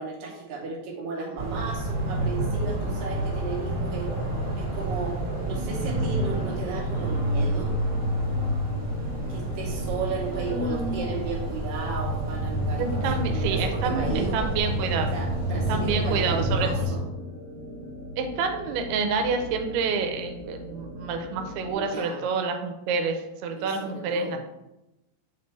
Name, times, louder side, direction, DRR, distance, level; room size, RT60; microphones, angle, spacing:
voice 1, 0.0-4.1 4.6-5.2 5.4-7.8 9.3-13.0 13.3-14.4 15.1-17.0 21.7-22.2 23.6-24.4, right 4 dB, 70° right, -2 dB, 2.3 m, -34 dB
sound 1, 1.4-16.9, right 1 dB, 35° right, 2.8 m, -28 dB
sound 2, 5.5-21.7, left 1 dB, 75° left, 1.2 m, -40 dB
voice 2, 10.5-10.9 12.8-15.2 15.7-16.7 18.2-24.4, right 4 dB, 90° right, 5 dB, 2.7 m, -28 dB
8.2 x 3.8 x 3.3 m, 0.94 s
omnidirectional pair, 4.5 m